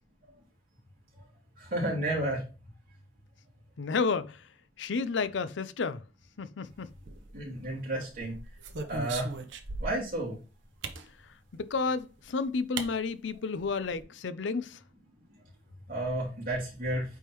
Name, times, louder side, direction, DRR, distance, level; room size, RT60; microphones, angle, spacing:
voice 1, 1.6-2.4 7.3-8.3 8.9-9.3 9.8-10.4 15.9-17.0, right 1 dB, 45° right, 2.9 m, -31 dB
voice 2, 3.8-4.4 4.8-6.0 6.4-6.9 11.6-14.8, left 4 dB, 70° left, 0.5 m, -31 dB
sound 1, 6.9-7.6 8.1-10.1 10.8-11.1 12.2-12.3 12.8-12.9 13.3-13.4 13.6-14.0, right 3 dB, 75° right, 0.9 m, -38 dB
8.9 x 3.6 x 3.1 m
head